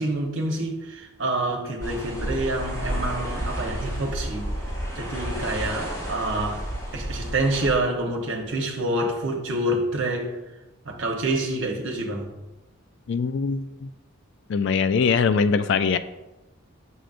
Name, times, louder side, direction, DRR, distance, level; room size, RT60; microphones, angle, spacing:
voice 1, 0.0-4.5 4.9-6.6 6.9-10.3 10.8-12.3, right 1 dB, 65° right, 1 dB, 1.2 m, -27 dB
sound 1, 1.8-7.7, equal, 15° left, 2.4 m, -31 dB
voice 2, 13.1-13.9 14.5-16.0, left 5 dB, 55° left, 11 dB, 0.3 m, -22 dB
9.0 x 6.3 x 2.5 m, 1.0 s
head